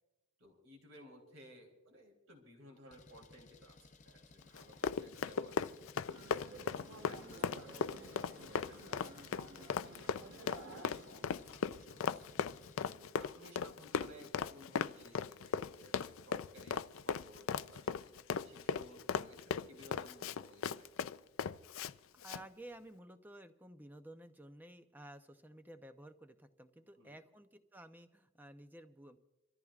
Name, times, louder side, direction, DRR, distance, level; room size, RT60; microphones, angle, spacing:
voice 1, 0.4-5.8 6.3-11.0 11.5-12.4 12.8-18.1 18.4-20.9 27.0-27.2, equal, 85° right, 1 dB, 3.7 m, -58 dB
Engine, 2.9-12.9, left 3 dB, 35° left, 0.7 m, -60 dB
Run, 4.5-21.9 22.2-22.4, left 6 dB, 75° left, 0.4 m, -37 dB
sound 1, 6.1-11.5, right 2 dB, 65° right, 1.1 m, -54 dB
voice 2, 22.1-29.2, right 1 dB, 10° right, 8 dB, 0.6 m, -54 dB
27.5 x 14.0 x 2.4 m, 1.0 s
head